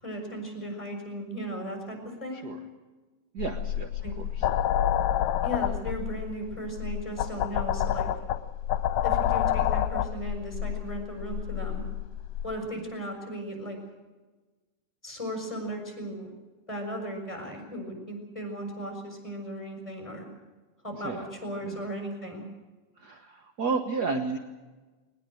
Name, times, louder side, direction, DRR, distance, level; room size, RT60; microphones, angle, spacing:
voice 1, 0.0-2.4 4.0-4.1 5.4-8.1 9.0-11.8 12.4-13.8 15.0-16.3 16.7-20.3 20.8-22.4, equal, 10° left, 2 dB, 6.5 m, -36 dB
voice 2, 3.3-4.5 21.0-21.3 21.6-21.8 23.0-24.4, right 4 dB, 50° right, 6 dB, 1.2 m, -32 dB
sound 1, 3.4-12.5, left 11 dB, 80° left, 2.3 m, -28 dB
21.5 x 19.5 x 7.8 m, 1.2 s
omnidirectional pair, 3.5 m